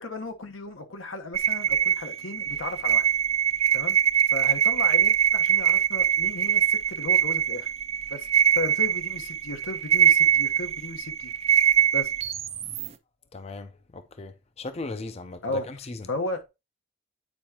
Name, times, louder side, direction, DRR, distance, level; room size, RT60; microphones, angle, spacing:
voice 1, 0.0-3.1 3.7-4.0 4.3-7.7 8.1-11.3 11.9-12.1 15.4-15.6 16.1-16.5, left 2 dB, 85° left, 1.1 m, -35 dB
sound 1, 1.3-12.9, right 9 dB, 30° right, 0.4 m, -23 dB
voice 2, 13.3-16.1, left 3 dB, 30° left, 0.4 m, -37 dB
8.7 x 4.8 x 2.9 m
head